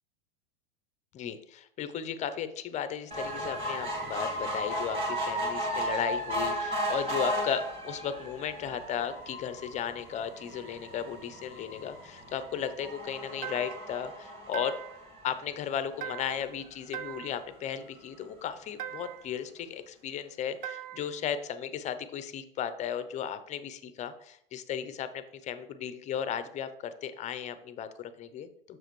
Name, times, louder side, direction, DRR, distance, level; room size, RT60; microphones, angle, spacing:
voice 1, 1.1-14.8 15.2-28.8, left 8 dB, 25° left, 12 dB, 0.6 m, -35 dB
sound 1, 3.1-15.7 16.3-16.4 16.7-16.8 17.0-17.1, equal, 20° right, 1.7 m, -35 dB
sound 2, 13.4-14.0 14.5-15.1 16.0-16.5 16.9-17.5 18.8-19.3 20.6-21.2, right 10 dB, 65° right, 0.6 m, -40 dB
7.1 x 6.2 x 3.1 m, 0.69 s
hypercardioid pair, 125°, 29 cm